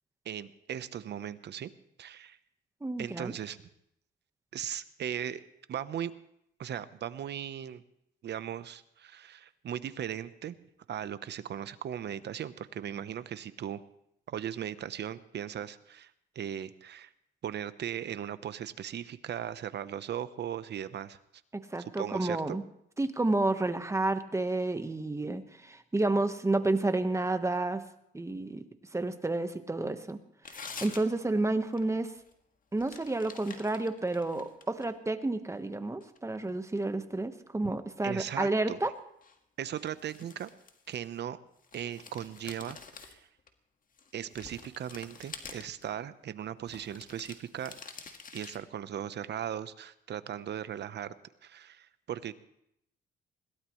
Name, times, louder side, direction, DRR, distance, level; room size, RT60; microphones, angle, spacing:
voice 1, 0.2-1.7 2.0-2.4 3.0-3.6 4.5-5.4 5.7-6.1 6.6-7.8 8.2-10.5 10.9-13.8 14.3-17.1 17.4-21.2 22.0-22.6 38.0-38.8 39.6-40.5 40.9-41.4 41.7-43.3 44.1-47.8 48.3-51.2 51.4-52.3, right 10 dB, 60° right, 13 dB, 0.9 m, -38 dB
voice 2, 2.8-3.3 21.5-22.6 23.0-27.8 28.1-28.6 28.9-30.2 30.5-32.1 32.7-38.9, right 2 dB, 15° right, 9 dB, 1.2 m, -30 dB
sound 1, 30.4-31.3 31.7-31.8 32.2-32.3 32.8-35.0 35.5-36.6 39.2-39.4 39.8-41.3 41.6-43.5 44.0-45.9 46.6-48.6, left 5 dB, 45° left, 1.6 m, -48 dB
21.5 x 17.0 x 3.2 m, 0.76 s
cardioid pair, 90°, 20 cm